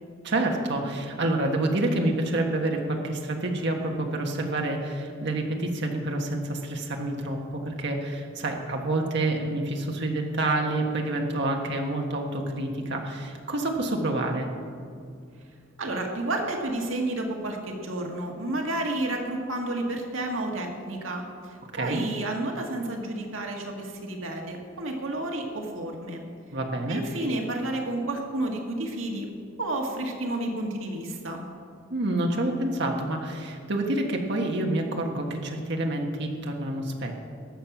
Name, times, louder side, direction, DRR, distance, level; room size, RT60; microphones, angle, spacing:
voice 1, 0.2-14.5 21.7-22.0 26.5-27.0 31.9-37.1, right 2 dB, 60° right, 1 dB, 1.4 m, -28 dB
voice 2, 15.8-26.2 26.9-29.3 29.6-31.4, right 2 dB, 80° right, 1 dB, 1.7 m, -31 dB
19.0 x 7.4 x 6.0 m, 2.3 s
head